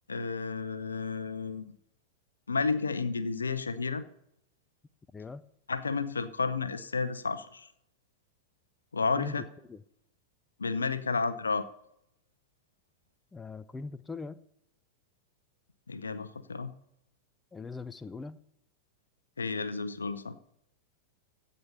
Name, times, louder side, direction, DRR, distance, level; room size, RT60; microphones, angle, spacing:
voice 1, 0.1-1.7 2.5-4.0 5.7-7.7 8.9-9.5 10.6-11.7 15.9-16.7 19.4-20.3, left 4 dB, 75° left, 14 dB, 0.8 m, -31 dB
voice 2, 13.3-14.4 17.5-18.4, left 4 dB, 10° left, 14 dB, 0.5 m, -40 dB
16.0 x 5.5 x 6.9 m, 0.76 s
figure-of-eight pair, 90°, 0 cm